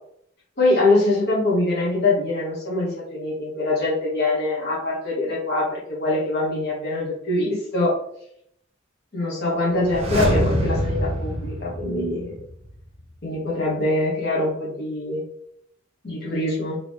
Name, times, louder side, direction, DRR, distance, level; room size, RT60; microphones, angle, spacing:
voice 1, 0.6-7.9 9.1-12.4 13.2-15.2 16.0-16.8, left 2 dB, 55° left, -6 dB, 1.6 m, -23 dB
sound 1, 9.7-12.7 12.9-13.0, right 1 dB, 30° right, 1.0 m, -25 dB
3.7 x 3.7 x 3.2 m, 0.68 s
head